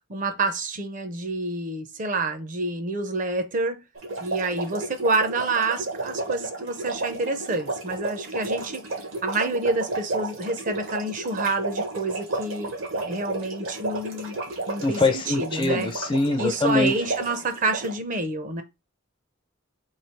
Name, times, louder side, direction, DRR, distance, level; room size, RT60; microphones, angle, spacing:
voice 1, 0.1-3.8 4.2-8.8 9.2-14.4 14.7-15.9 16.4-18.6, right 2 dB, 40° right, 0.5 m, -28 dB
sound 1, 3.9-17.9, right 2 dB, 75° right, 1.0 m, -32 dB
voice 2, 14.8-16.9, left 2 dB, 25° left, 0.4 m, -23 dB
3.2 x 2.7 x 4.4 m
head